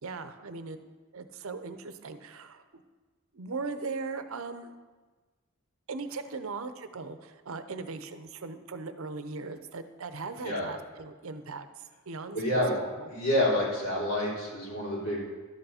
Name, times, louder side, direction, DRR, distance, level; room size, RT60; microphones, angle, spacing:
voice 1, 0.0-0.8 1.1-2.8 3.3-4.7 5.9-13.1, right 4 dB, 70° right, 10 dB, 0.7 m, -39 dB
voice 2, 12.3-12.7 13.1-15.2, left 1 dB, 70° left, -5 dB, 3.5 m, -28 dB
12.0 x 7.9 x 4.3 m, 1.3 s
head